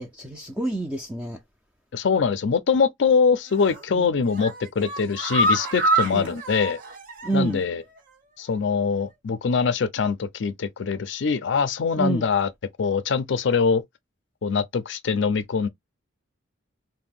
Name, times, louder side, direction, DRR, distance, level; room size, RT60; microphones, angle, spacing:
voice 1, 0.0-1.4 3.9-4.1 6.1-6.3 7.2-7.6 12.0-12.2, right 3 dB, 5° right, 0.4 m, -28 dB
voice 2, 1.9-6.8 7.3-7.8 8.4-12.5 12.8-13.8 14.4-15.7, left 5 dB, 65° left, 0.4 m, -23 dB
sound 1, 3.5-3.9 4.2-7.6 8.0-8.1 8.4-8.5, right 1 dB, 45° right, 0.8 m, -26 dB
2.6 x 2.1 x 3.5 m
head